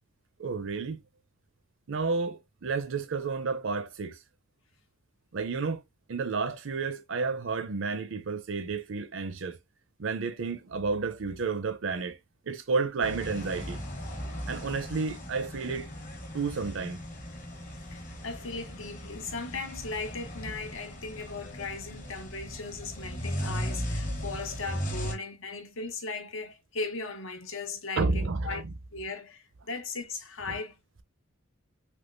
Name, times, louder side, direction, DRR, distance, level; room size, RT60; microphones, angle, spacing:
voice 1, 0.4-1.0 1.9-4.2 5.3-5.8 6.1-9.6 10.0-12.2 12.5-13.8 14.5-15.9 16.3-17.0 28.0-28.6, right 4 dB, 60° right, 0.5 m, -31 dB
sound 1, 13.0-25.1, equal, 40° left, 1.1 m, -37 dB
voice 2, 17.9-28.6 28.9-30.7, left 3 dB, 70° left, 0.8 m, -37 dB
3.6 x 2.9 x 2.4 m
head